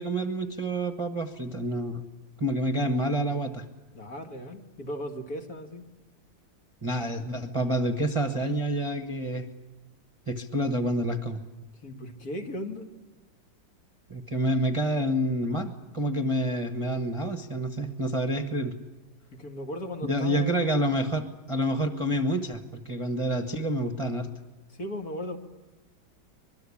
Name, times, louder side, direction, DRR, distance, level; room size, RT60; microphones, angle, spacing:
voice 1, 0.0-2.0 2.4-3.6 6.8-9.5 10.3-11.4 14.1-18.7 20.0-24.3, right 1 dB, 20° right, 6 dB, 1.2 m, -28 dB
voice 2, 3.9-5.9 11.8-12.9 19.3-20.8 24.7-25.4, left 1 dB, 50° left, 4 dB, 2.6 m, -37 dB
25.0 x 22.0 x 8.6 m, 1.1 s
omnidirectional pair, 2.0 m